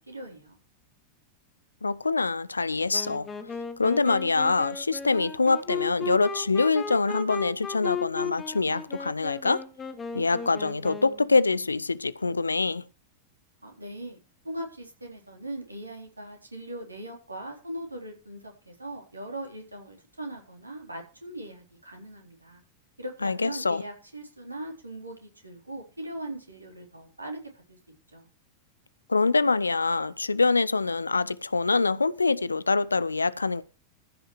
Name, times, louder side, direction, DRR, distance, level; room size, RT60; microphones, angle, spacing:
voice 1, 0.1-0.6 13.6-14.2 14.4-22.6 23.0-27.8 28.1-28.3, right 1 dB, 80° right, 4.1 m, -40 dB
voice 2, 1.8-3.3 3.8-9.6 10.1-12.8 23.2-23.8 29.1-33.6, left 3 dB, 80° left, 0.6 m, -25 dB
Wind instrument woodwind instrument, 2.9-11.3, left 6 dB, 20° left, 1.7 m, -36 dB
14.5 x 6.4 x 6.2 m
figure-of-eight pair, 90°, 0 cm